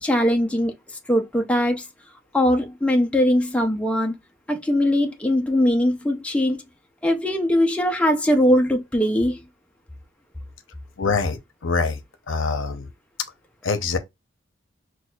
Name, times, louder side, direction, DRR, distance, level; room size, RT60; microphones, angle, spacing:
voice 1, 0.0-1.9 2.3-4.2 4.5-6.6 7.0-9.4, left 1 dB, 5° left, 0.5 m, -21 dB
voice 2, 11.0-12.0 12.3-12.9 13.6-14.0, left 4 dB, 70° left, 0.7 m, -24 dB
6.0 x 2.3 x 2.3 m
head